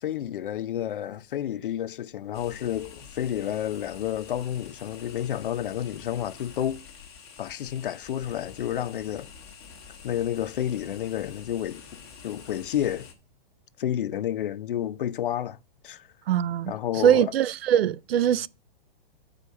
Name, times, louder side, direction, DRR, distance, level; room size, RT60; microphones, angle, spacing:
voice 1, 0.0-6.9 7.4-9.3 10.0-11.8 12.2-13.1 13.8-15.6 15.8-16.1 16.7-17.3, left 11 dB, 60° left, 0.6 m, -30 dB
sound 1, 2.3-13.1, left 6 dB, 30° left, 1.3 m, -47 dB
voice 2, 16.3-16.7 17.0-18.5, right 10 dB, 90° right, 0.5 m, -22 dB
8.4 x 5.0 x 6.3 m
hypercardioid pair, 175°, 29 cm